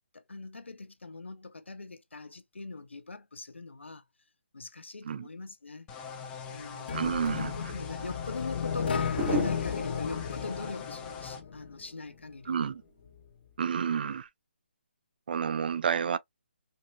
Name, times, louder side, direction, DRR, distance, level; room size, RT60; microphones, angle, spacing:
voice 1, 0.1-4.0 4.5-5.9 6.5-12.7, left 3 dB, 90° left, 0.7 m, -42 dB
sound 1, 5.9-11.4, left 6 dB, 15° left, 0.6 m, -42 dB
sound 2, 6.9-11.8, left 6 dB, 60° left, 0.8 m, -34 dB
voice 2, 6.9-7.5 12.5-12.8 13.6-14.3 15.3-16.2, right 7 dB, 50° right, 0.4 m, -30 dB
sound 3, 9.2-12.3 12.6-13.0, equal, 15° right, 1.7 m, -38 dB
4.5 x 2.6 x 2.2 m
figure-of-eight pair, 150°, 6 cm